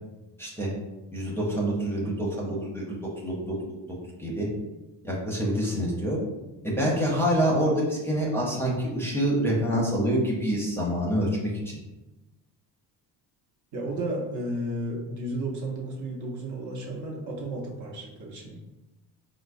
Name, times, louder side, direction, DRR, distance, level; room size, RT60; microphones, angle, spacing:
voice 1, 0.4-0.7 1.1-3.6 3.9-4.5 5.0-6.2 6.6-11.8, equal, 5° left, -4 dB, 0.6 m, -26 dB
voice 2, 13.7-18.6, right 1 dB, 45° right, -1 dB, 0.7 m, -33 dB
4.5 x 2.0 x 2.5 m, 1.0 s
cardioid pair, 125°, 40 cm